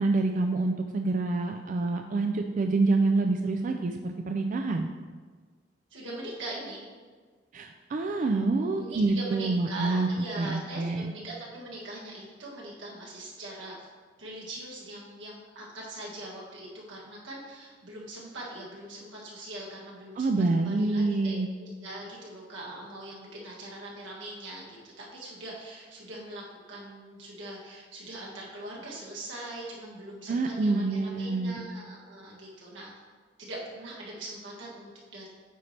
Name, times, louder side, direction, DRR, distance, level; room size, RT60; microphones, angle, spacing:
voice 1, 0.0-4.9 7.5-11.1 20.2-21.5 30.3-31.6, right 3 dB, 45° right, 4 dB, 0.3 m, -27 dB
voice 2, 5.9-6.8 8.8-13.9 14.2-32.9 33.4-35.3, right 1 dB, 90° right, -4 dB, 1.7 m, -41 dB
9.0 x 4.2 x 3.3 m, 1.5 s
head